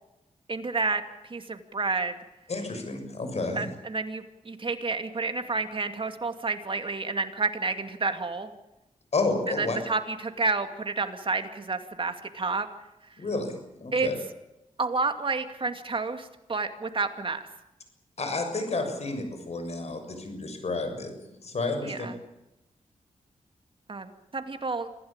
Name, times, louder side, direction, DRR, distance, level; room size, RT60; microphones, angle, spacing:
voice 1, 0.5-2.2 3.6-8.5 9.5-12.7 13.9-14.1 14.8-17.5 21.8-22.2 23.9-24.9, right 3 dB, 40° right, 7 dB, 2.4 m, -30 dB
voice 2, 2.5-3.6 9.1-9.8 13.2-14.1 18.2-21.1 21.4-22.1, left 3 dB, 55° left, 6 dB, 6.7 m, -30 dB
26.0 x 16.0 x 8.9 m, 0.93 s
cardioid pair, 85°, 13 cm